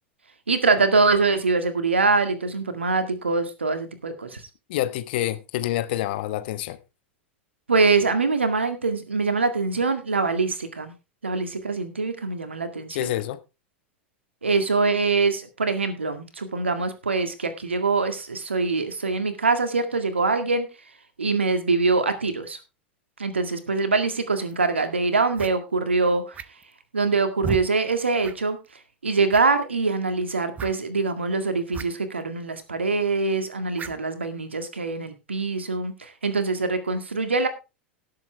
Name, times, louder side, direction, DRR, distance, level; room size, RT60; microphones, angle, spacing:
voice 1, 0.5-4.4 7.7-10.9 11.2-13.1 14.4-20.7 21.2-22.6 23.2-26.4 26.9-28.6 29.0-37.5, right 3 dB, 85° right, 2.0 m, -24 dB
voice 2, 4.7-6.8 12.9-13.4, left 14 dB, 60° left, 1.2 m, -27 dB
sound 1, 24.5-24.6 25.3-25.5 26.3-26.7 27.4-27.7 28.2-28.4 28.6-28.7 29.3-29.6 30.6-30.7 31.7-31.9 32.1-32.2 33.7-34.0, right 7 dB, 25° right, 0.9 m, -33 dB
18.0 x 7.7 x 3.3 m
figure-of-eight pair, 85°, 6 cm